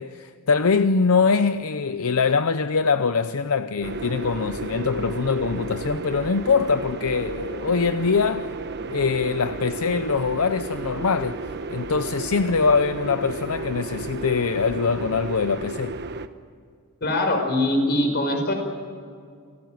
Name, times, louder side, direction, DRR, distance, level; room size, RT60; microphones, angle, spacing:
voice 1, 0.0-8.5 8.9-11.4 11.7-16.0, left 5 dB, 75° left, 0.7 m, -23 dB
sound 1, 3.8-16.3, right 3 dB, 50° right, 1.1 m, -33 dB
voice 2, 17.0-18.5, left 1 dB, 50° left, 5.6 m, -22 dB
29.0 x 18.0 x 9.4 m
head